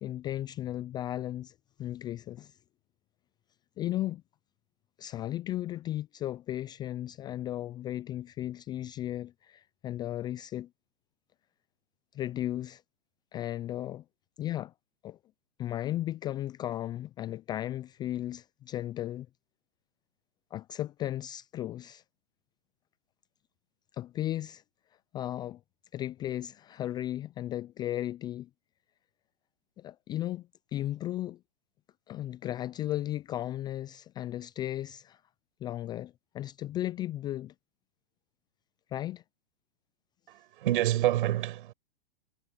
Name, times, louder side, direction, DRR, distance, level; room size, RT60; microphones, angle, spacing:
voice 1, 0.0-2.6 3.8-4.2 5.0-10.7 12.1-12.8 13.3-14.0 14.4-14.7 15.0-15.2 15.6-19.3 20.5-22.0 23.9-24.6 25.1-25.6 25.9-28.5 29.8-31.4 32.1-35.2 35.6-37.5 38.9-39.2, left 13 dB, 15° left, 0.3 m, -35 dB
voice 2, 40.3-41.7, right 14 dB, 60° right, 6.3 m, -27 dB
hypercardioid pair, 125°, 29 cm